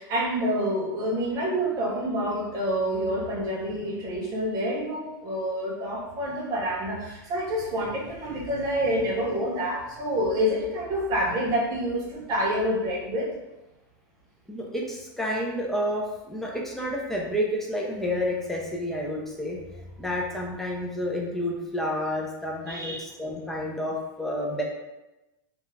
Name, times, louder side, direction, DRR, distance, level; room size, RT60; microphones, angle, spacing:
voice 1, 0.0-13.3 22.7-23.0, equal, 30° right, -2 dB, 0.7 m, -27 dB
voice 2, 14.5-19.6 20.0-24.6, left 1 dB, 5° left, -2 dB, 0.4 m, -30 dB
2.4 x 2.2 x 3.1 m, 1.0 s
supercardioid pair, 150°, 12 cm